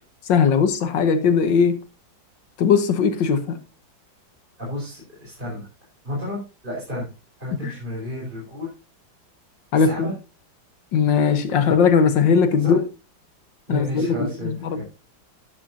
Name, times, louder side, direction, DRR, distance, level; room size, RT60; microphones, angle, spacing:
voice 1, 0.3-1.8 2.6-3.6 7.6-7.7 9.7-10.1 10.9-12.8 13.7-14.8, left 6 dB, 70° left, 1.8 m, -19 dB
voice 2, 4.6-5.7 6.0-6.4 6.6-7.1 7.4-8.7 9.7-10.1 12.6-12.8 13.7-14.8, left 1 dB, 25° right, 4.6 m, -31 dB
12.0 x 10.0 x 2.7 m
omnidirectional pair, 2.1 m